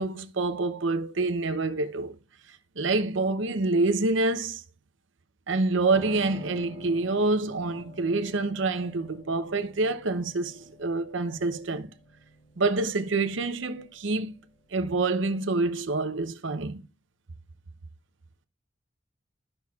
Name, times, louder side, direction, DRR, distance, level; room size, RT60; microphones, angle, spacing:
voice 1, 0.0-2.2 2.8-4.6 5.5-11.9 12.6-14.3 14.7-16.8, right 3 dB, 75° right, 0.8 m, -27 dB
Piano, 5.9-15.9, left 1 dB, 65° left, 3.9 m, -48 dB
13.5 x 5.9 x 2.4 m
head